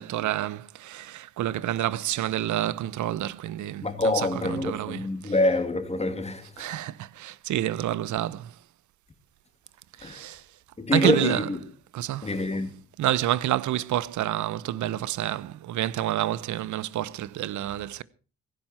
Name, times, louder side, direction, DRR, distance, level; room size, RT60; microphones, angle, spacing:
voice 1, 0.0-5.3 6.6-8.5 10.0-10.4 10.9-11.5 11.9-12.3 13.0-18.0, right 13 dB, 75° right, 0.9 m, -28 dB
voice 2, 3.8-6.7 10.0-10.2 10.8-11.6 12.2-12.8, left 2 dB, 20° left, 2.6 m, -26 dB
16.5 x 15.5 x 4.4 m
cardioid pair, 90°, 30 cm